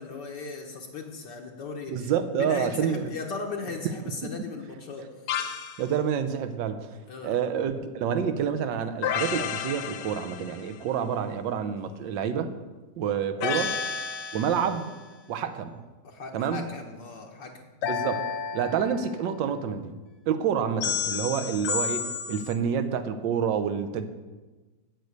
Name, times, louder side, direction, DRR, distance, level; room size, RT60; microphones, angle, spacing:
voice 1, 0.0-5.3 7.1-7.4 13.4-13.6 16.0-17.7, left 4 dB, 65° left, 1 dB, 1.5 m, -38 dB
voice 2, 1.9-3.1 5.8-6.9 7.2-12.5 13.0-13.7 14.3-14.9 15.3-15.8 16.3-16.7 17.8-18.3 18.5-19.9 20.3-24.1, right 7 dB, 70° right, 9 dB, 1.4 m, -28 dB
sound 1, 5.3-5.8 9.0-10.7 13.4-14.8 17.8-19.3 20.8-22.5, left 7 dB, 85° left, 1.6 m, -31 dB
8.4 x 6.6 x 8.1 m, 1.2 s
omnidirectional pair, 2.2 m